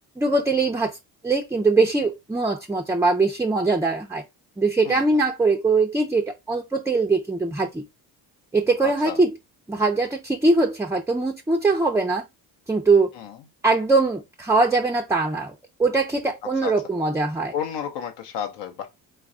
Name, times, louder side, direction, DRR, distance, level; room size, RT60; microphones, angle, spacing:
voice 1, 0.2-1.0 1.2-4.2 4.6-7.8 8.5-9.3 9.7-12.2 12.7-13.1 13.6-15.5 15.8-17.5, right 3 dB, 5° right, 0.4 m, -21 dB
voice 2, 8.8-9.2 13.1-13.4 16.6-16.7 17.5-18.9, left 8 dB, 65° left, 0.7 m, -31 dB
3.2 x 2.4 x 3.6 m
supercardioid pair, 60°, 46 cm